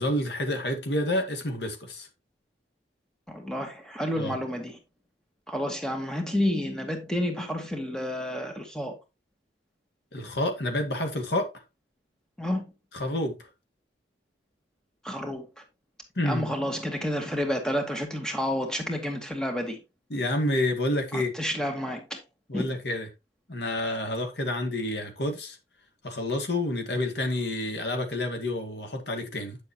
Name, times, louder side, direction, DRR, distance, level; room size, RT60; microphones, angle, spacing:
voice 1, 0.0-2.1 4.2-4.3 10.1-11.5 12.9-13.4 16.2-16.4 20.1-21.3 22.5-23.1 23.5-25.6 26.0-29.6, left 1 dB, 70° left, 2.1 m, -29 dB
voice 2, 3.3-4.7 5.5-9.0 12.4-12.6 15.0-15.4 16.2-19.8 21.1-22.2 22.5-22.7, left 1 dB, 5° left, 2.0 m, -30 dB
9.9 x 7.0 x 2.9 m
head